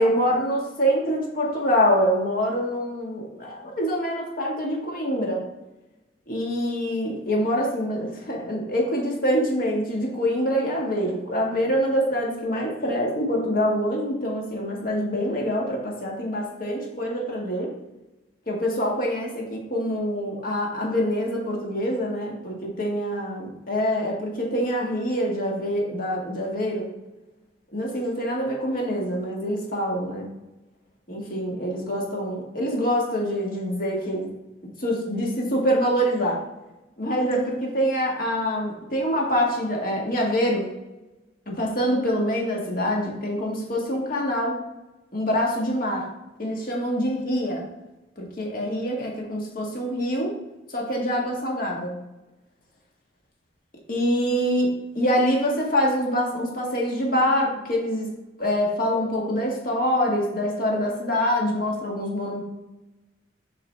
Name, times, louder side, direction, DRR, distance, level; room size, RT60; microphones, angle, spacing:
voice 1, 0.0-5.4 6.3-17.7 18.5-26.9 27.7-30.3 31.1-34.3 34.8-36.4 37.0-40.7 41.5-44.6 45.1-46.0 46.4-47.6 48.2-50.3 50.7-51.9 53.9-58.1 58.4-62.4, equal, 50° left, -1 dB, 1.6 m, -25 dB
7.3 x 4.8 x 3.4 m, 1.0 s
head